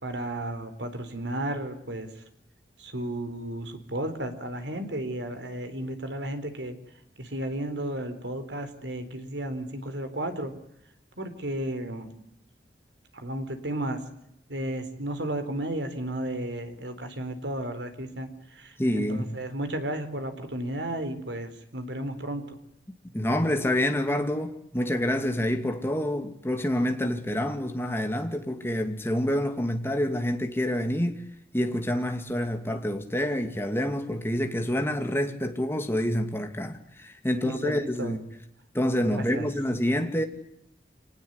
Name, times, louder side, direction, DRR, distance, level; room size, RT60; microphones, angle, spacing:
voice 1, 0.0-2.1 2.8-6.8 7.2-10.5 11.2-12.1 13.1-14.0 14.5-22.6 37.3-38.2 39.1-39.5, right 1 dB, 85° right, 4.2 m, -33 dB
voice 2, 18.8-19.4 23.1-31.2 31.5-38.2 38.7-40.3, left 1 dB, 15° left, 2.6 m, -27 dB
27.0 x 19.0 x 9.7 m
head